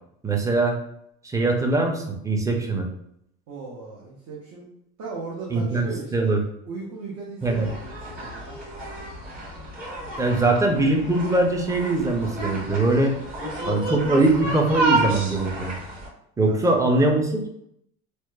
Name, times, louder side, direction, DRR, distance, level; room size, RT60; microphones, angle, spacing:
voice 1, 0.2-0.8 1.2-2.9 5.5-6.4 7.4-7.7 10.2-13.2 13.6-15.7 16.4-17.5, right 2 dB, 10° right, 1 dB, 0.4 m, -22 dB
voice 2, 3.5-4.7 5.0-6.4 6.7-8.6 16.4-16.6, right 3 dB, 60° right, -3 dB, 0.7 m, -37 dB
sound 1, 7.4-16.1, right 2 dB, 25° right, 1.3 m, -30 dB
2.9 x 2.0 x 2.2 m, 0.75 s
supercardioid pair, 90°, 32 cm